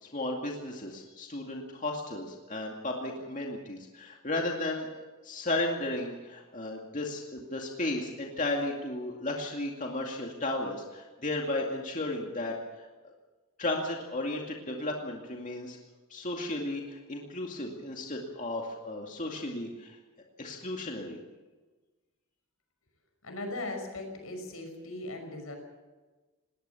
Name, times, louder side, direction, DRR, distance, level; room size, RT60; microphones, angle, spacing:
voice 1, 0.0-4.9 5.2-12.9 13.6-15.8 16.1-20.0 20.4-21.2, left 2 dB, 35° left, 0 dB, 2.3 m, -34 dB
voice 2, 23.2-25.6, left 2 dB, 80° left, 5 dB, 5.9 m, -38 dB
20.5 x 19.0 x 7.0 m, 1.3 s
head